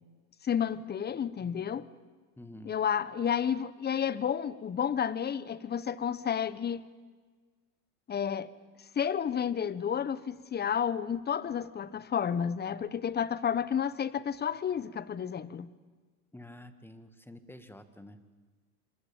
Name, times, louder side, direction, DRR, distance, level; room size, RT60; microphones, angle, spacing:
voice 1, 0.4-1.9 2.7-6.8 8.1-8.5 8.9-15.7, left 8 dB, 20° left, 16 dB, 1.2 m, -31 dB
voice 2, 2.4-2.7 16.3-18.2, left 1 dB, 5° left, 9 dB, 2.0 m, -49 dB
26.0 x 24.5 x 8.9 m, 1.4 s
hypercardioid pair, 105°, 47 cm